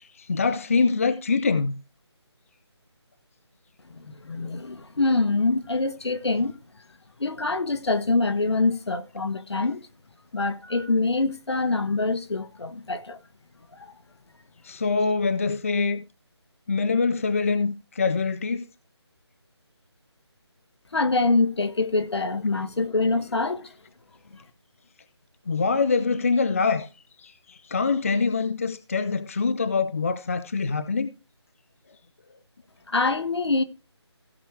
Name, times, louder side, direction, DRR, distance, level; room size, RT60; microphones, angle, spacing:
voice 1, 0.0-1.8 14.6-16.0 16.7-18.7 25.5-26.9 27.2-31.1, left 4 dB, 30° left, 0.5 m, -24 dB
voice 2, 3.9-6.6 7.2-9.8 10.3-13.2 13.8-13.9 20.9-23.7 32.9-33.6, left 3 dB, 65° left, 1.4 m, -25 dB
16.5 x 6.0 x 3.3 m
figure-of-eight pair, 165°, 15 cm